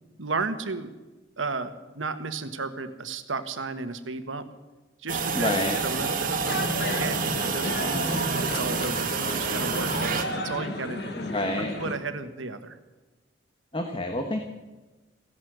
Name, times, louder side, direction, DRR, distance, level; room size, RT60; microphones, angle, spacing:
voice 1, 0.2-0.9 1.4-4.4 5.0-5.5 5.8-8.1 8.4-11.2 11.5-12.8, right 3 dB, 80° right, 9 dB, 1.4 m, -34 dB
sound 1, 5.1-10.2, right 4 dB, 45° right, 1.7 m, -28 dB
voice 2, 5.3-5.8 11.1-11.7 13.7-14.4, left 1 dB, 25° left, 5 dB, 1.2 m, -28 dB
sound 2, 6.5-12.0, left 2 dB, 55° left, 1.8 m, -34 dB
16.5 x 11.0 x 7.9 m, 1.2 s
head